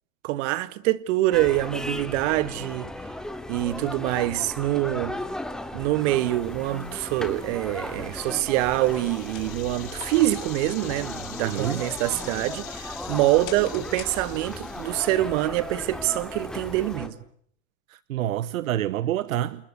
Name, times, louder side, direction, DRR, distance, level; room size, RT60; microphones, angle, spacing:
voice 1, 0.2-2.9 3.5-5.2 5.7-17.1, right 16 dB, 65° right, 1.8 m, -25 dB
sound 1, 1.3-17.1, left 1 dB, ahead, 3.1 m, -36 dB
sound 2, 6.0-17.0, left 11 dB, 85° left, 3.7 m, -45 dB
sound 3, 9.2-14.7, left 13 dB, 50° left, 5.2 m, -48 dB
voice 2, 11.4-11.9 17.9-19.6, right 12 dB, 85° right, 1.1 m, -27 dB
28.5 x 21.0 x 8.2 m
hypercardioid pair, 110°, 39 cm